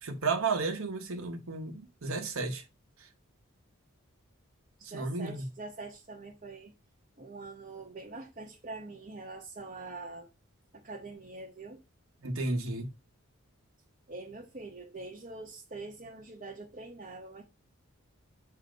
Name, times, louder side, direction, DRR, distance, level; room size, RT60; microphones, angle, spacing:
voice 1, 0.0-2.6 3.0-3.1 4.8-5.5 12.2-12.9, right 3 dB, 75° right, 1.1 m, -33 dB
voice 2, 4.8-6.7 7.2-10.3 10.7-11.8 14.1-17.4, right 3 dB, 35° right, 0.8 m, -44 dB
6.7 x 2.8 x 5.1 m
head